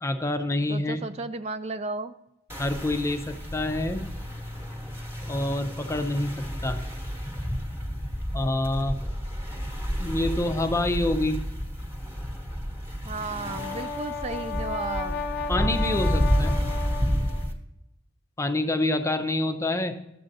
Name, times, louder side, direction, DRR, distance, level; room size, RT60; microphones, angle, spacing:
voice 1, 0.0-1.0 2.6-4.1 5.3-6.9 8.3-9.0 10.0-11.4 15.5-16.6 18.4-20.0, left 1 dB, 15° left, 7 dB, 0.6 m, -27 dB
voice 2, 0.7-2.1 13.1-15.2, right 3 dB, 35° right, 9 dB, 0.3 m, -34 dB
sound 1, 2.5-17.5, equal, 10° right, 1.1 m, -30 dB
Brass instrument, 13.2-17.5, left 5 dB, 55° left, 0.6 m, -34 dB
13.0 x 7.7 x 2.6 m, 0.88 s
head